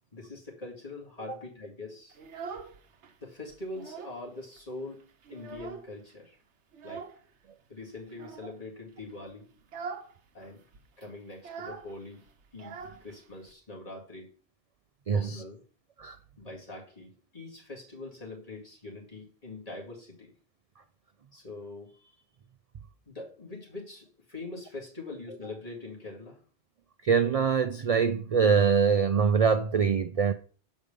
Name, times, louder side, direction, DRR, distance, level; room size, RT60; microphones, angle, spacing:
voice 1, 0.1-2.2 3.2-5.0 5.3-6.4 6.8-7.0 7.7-9.6 10.3-10.6 11.0-12.2 12.5-14.3 15.1-15.6 16.4-20.3 21.3-22.2 23.1-26.4, left 2 dB, 35° left, 2.3 m, -43 dB
Child speech kid speaking, 2.1-3.1 3.5-4.3 4.6-4.7 5.0-6.1 6.7-7.2 8.1-8.6 9.0-9.2 9.6-10.2 10.4-10.5 10.7-13.5, right 5 dB, 85° right, 1.1 m, -43 dB
voice 2, 15.1-15.4 16.0-16.2 27.0-30.3, right 6 dB, 65° right, 0.3 m, -24 dB
7.2 x 4.8 x 5.1 m
omnidirectional pair, 1.1 m